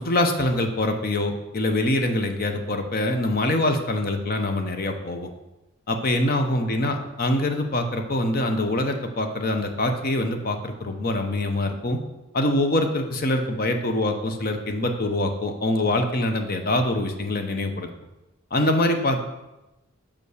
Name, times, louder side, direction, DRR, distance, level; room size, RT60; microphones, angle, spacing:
voice 1, 0.0-5.3 5.9-12.0 12.3-17.9 18.5-19.2, left 1 dB, 45° left, 5 dB, 0.8 m, -24 dB
5.5 x 5.1 x 6.5 m, 0.99 s
head